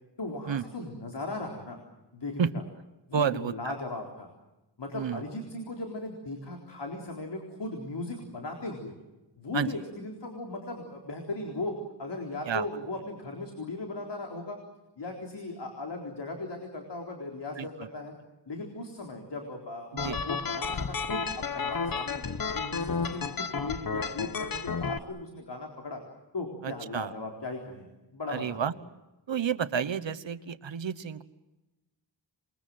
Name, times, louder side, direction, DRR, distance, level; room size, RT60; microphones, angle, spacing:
voice 1, 0.2-1.8 2.1-2.5 3.1-4.3 4.8-8.9 9.4-14.6 15.0-18.1 18.5-22.2 22.5-26.0 26.3-27.9 28.1-28.7, left 2 dB, 70° left, 2 dB, 4.1 m, -37 dB
voice 2, 3.1-3.7 4.9-5.2 9.5-9.7 12.4-12.7 17.6-17.9 20.0-20.2 26.6-27.1 28.3-28.7 29.3-31.2, right 7 dB, 85° right, 12 dB, 1.3 m, -30 dB
sound 1, 20.0-25.0, left 5 dB, 50° left, 1.1 m, -32 dB
28.0 x 22.0 x 7.7 m, 1.0 s
wide cardioid pair, 95°, 44 cm